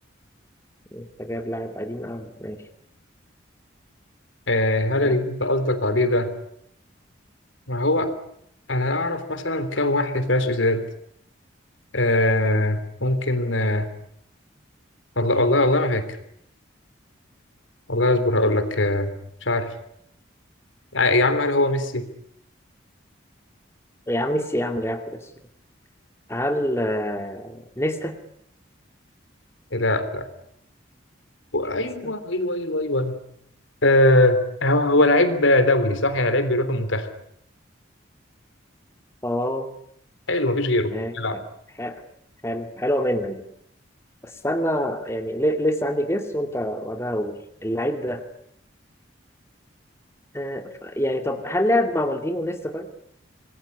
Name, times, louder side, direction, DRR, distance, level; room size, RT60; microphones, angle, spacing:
voice 1, 0.9-2.6 5.0-5.2 24.1-25.2 26.3-28.1 31.8-32.1 39.2-39.7 40.9-41.4 41.8-42.0 42.4-43.4 44.2-48.2 50.3-52.9, equal, 15° left, 6 dB, 2.4 m, -26 dB
voice 2, 4.5-6.3 7.7-8.1 8.7-10.9 11.9-13.9 15.1-16.1 17.9-19.1 19.4-19.7 20.9-22.1 29.7-30.3 31.5-33.2 33.8-37.1 40.3-41.4, left 1 dB, 75° left, 10 dB, 3.5 m, -21 dB
27.0 x 21.0 x 9.9 m, 0.71 s
head